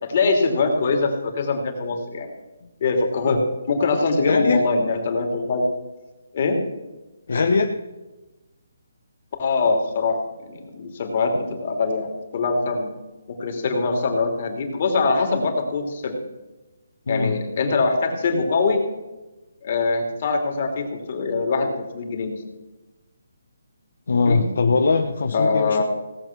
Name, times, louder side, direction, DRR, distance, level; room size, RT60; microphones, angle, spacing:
voice 1, 0.0-2.3 2.8-3.4 3.7-5.6 6.3-6.6 9.4-12.9 13.4-16.2 17.1-18.8 19.6-22.4 24.3-24.4 25.3-25.8, left 3 dB, 40° left, 2 dB, 2.8 m, -23 dB
voice 2, 4.2-4.6 7.3-7.8 17.1-17.3 24.1-25.8, left 4 dB, 65° left, 5 dB, 1.0 m, -21 dB
17.5 x 7.6 x 6.0 m, 1.1 s
hypercardioid pair, 165°, 0 cm